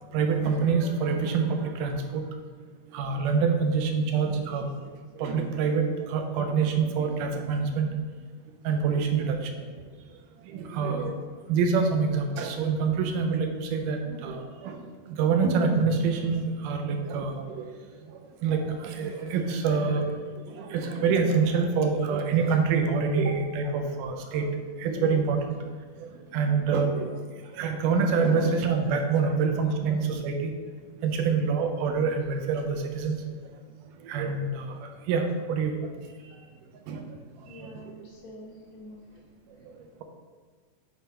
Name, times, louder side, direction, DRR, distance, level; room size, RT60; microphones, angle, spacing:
voice 1, 0.0-2.2 2.9-4.9 5.2-7.9 8.6-9.7 10.4-11.2 11.5-14.8 15.1-17.7 18.4-24.5 24.8-25.6 26.0-27.2 27.5-30.5 31.0-33.2 34.0-35.8 36.9-37.0 37.6-37.7, right 5 dB, 80° right, 4 dB, 2.2 m, -26 dB
voice 2, 37.4-39.0, equal, 70° left, -2 dB, 1.3 m, -46 dB
7.6 x 3.4 x 4.2 m, 1.5 s
omnidirectional pair, 3.8 m